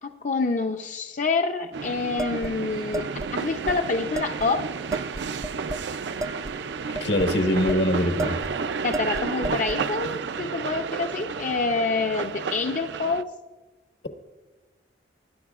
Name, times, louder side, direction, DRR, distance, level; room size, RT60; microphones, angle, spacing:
voice 1, 0.0-3.1 3.3-4.7 8.8-13.3, left 3 dB, 45° left, 4 dB, 0.5 m, -27 dB
sound 1, 1.7-13.2, right 5 dB, 75° right, 0.5 m, -32 dB
sound 2, 2.2-3.3 3.7-3.8 4.1-4.5 4.9-5.9 6.2-7.8 8.2-8.6 8.9-9.8, right 2 dB, 20° right, 0.3 m, -33 dB
voice 2, 7.0-8.4, left 1 dB, 75° left, 7 dB, 1.3 m, -22 dB
19.5 x 11.0 x 2.4 m, 1.2 s
head